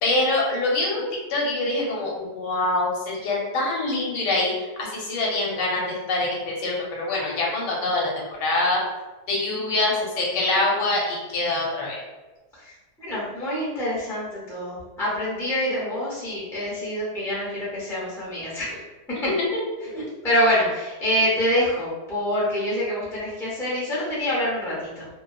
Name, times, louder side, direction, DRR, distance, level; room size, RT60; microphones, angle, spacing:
voice 1, 0.0-8.8 9.3-12.0 19.8-19.9, left 2 dB, 85° left, -3 dB, 1.3 m, -25 dB
voice 2, 12.6-18.8 20.2-25.1, equal, 5° left, -8 dB, 0.5 m, -26 dB
2.6 x 2.4 x 2.3 m, 1.2 s
omnidirectional pair, 1.8 m